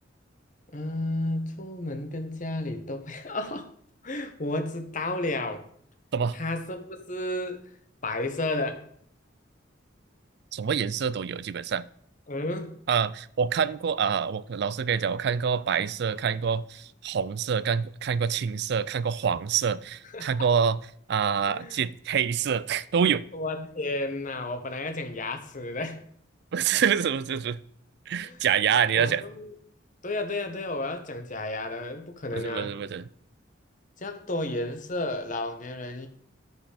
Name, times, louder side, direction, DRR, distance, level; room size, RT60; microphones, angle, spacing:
voice 1, 0.7-3.7 4.0-5.6 6.3-7.6 8.0-8.8 12.3-12.8 20.1-20.4 21.4-21.8 23.3-26.1 28.2-28.4 28.9-29.5 30.0-32.7 34.0-36.1, left 2 dB, 40° left, 1.2 m, -32 dB
voice 2, 10.5-11.9 12.9-20.8 21.1-23.3 26.5-27.6 28.1-29.2 32.3-33.1, right 7 dB, 55° right, 0.4 m, -26 dB
12.0 x 5.5 x 5.0 m
head